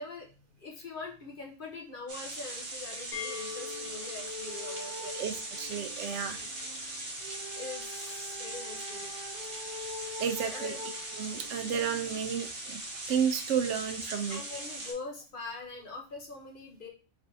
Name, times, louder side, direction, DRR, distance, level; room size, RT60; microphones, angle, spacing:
voice 1, 0.0-5.3 6.3-6.5 7.5-9.1 10.4-10.8 14.3-16.9, left 3 dB, 50° left, 0 dB, 0.9 m, -43 dB
sound 1, 2.1-14.9, right 1 dB, 25° right, 1.0 m, -40 dB
sound 2, 3.1-6.8, left 7 dB, 70° left, 1.4 m, -44 dB
sound 3, 3.4-12.2, left 2 dB, 50° right, 1.2 m, -46 dB
voice 2, 5.2-6.4 10.2-10.7 11.2-12.8 13.1-14.4, right 8 dB, 75° right, 7 dB, 0.9 m, -32 dB
4.3 x 3.2 x 2.6 m, 0.35 s
omnidirectional pair, 1.3 m